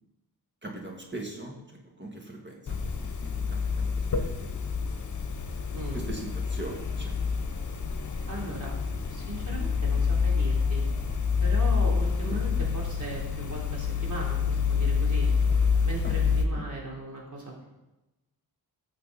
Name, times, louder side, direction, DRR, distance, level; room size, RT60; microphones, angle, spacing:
voice 1, 0.6-1.6 2.0-4.9 5.9-7.2 12.3-12.4 16.0-16.1 16.5-16.6, right 2 dB, 30° right, 0 dB, 1.9 m, -41 dB
sound 1, 2.7-16.4, left 5 dB, 50° left, 1.1 m, -27 dB
voice 2, 5.7-6.0 8.3-8.7 9.1-10.8 11.4-15.3 15.8-17.7, right 1 dB, 50° right, -3 dB, 3.6 m, -38 dB
14.5 x 6.8 x 4.2 m, 1.0 s
wide cardioid pair, 100°, 39 cm